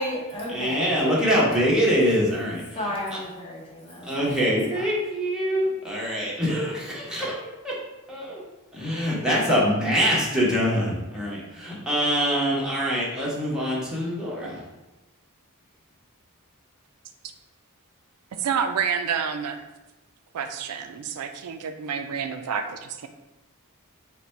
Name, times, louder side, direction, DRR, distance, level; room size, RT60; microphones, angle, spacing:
voice 1, 0.0-1.5 2.7-4.3, left 1 dB, 25° left, -4 dB, 1.1 m, -33 dB
voice 2, 0.5-2.8 3.1-3.2 4.0-7.4 7.6-7.7 8.1-8.4 8.7-14.6, equal, 5° right, -6 dB, 0.9 m, -24 dB
voice 3, 18.3-19.6 20.3-23.1, right 7 dB, 90° right, 7 dB, 0.4 m, -29 dB
4.0 x 2.2 x 4.3 m, 1.0 s
head